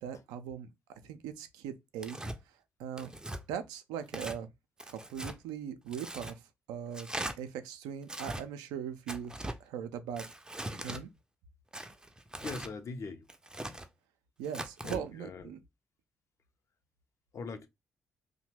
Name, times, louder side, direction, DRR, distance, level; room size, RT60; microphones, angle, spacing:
voice 1, 0.0-0.7 1.0-2.2 2.8-3.1 3.5-4.5 4.9-6.4 6.7-7.1 7.4-9.3 9.6-10.2 10.8-11.1 14.4-15.6, right 8 dB, 70° right, 0.4 m, -40 dB
Tearing, 2.0-2.4 3.0-3.4 4.1-4.4 4.8-5.4 5.9-6.3 6.9-7.3 8.0-8.4 9.1-9.6 10.2-11.0 11.7-12.7 13.3-13.9 14.4-15.0, right 1 dB, 10° right, 0.5 m, -40 dB
voice 2, 12.4-13.3 14.8-15.5 17.3-17.7, left 4 dB, 45° left, 0.5 m, -41 dB
2.7 x 2.1 x 3.0 m
figure-of-eight pair, 40°, 7 cm